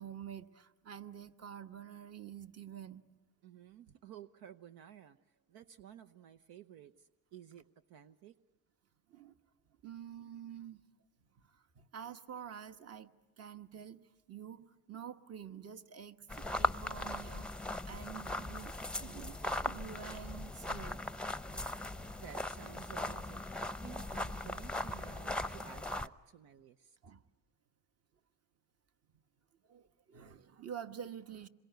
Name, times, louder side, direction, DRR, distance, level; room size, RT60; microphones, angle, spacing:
voice 1, 0.0-3.0 9.1-9.4 9.8-10.8 11.3-13.1 13.4-14.0 14.3-19.4 19.6-21.1 21.5-22.1 27.0-27.2 29.6-31.5, right 8 dB, 40° right, 8 dB, 1.4 m, -48 dB
voice 2, 3.4-8.4 21.8-27.0, right 9 dB, 70° right, 10 dB, 0.9 m, -54 dB
sound 1, 16.3-26.1, left 2 dB, 5° left, 0.8 m, -39 dB
27.0 x 22.5 x 9.3 m, 1.2 s
supercardioid pair, 80°, 37 cm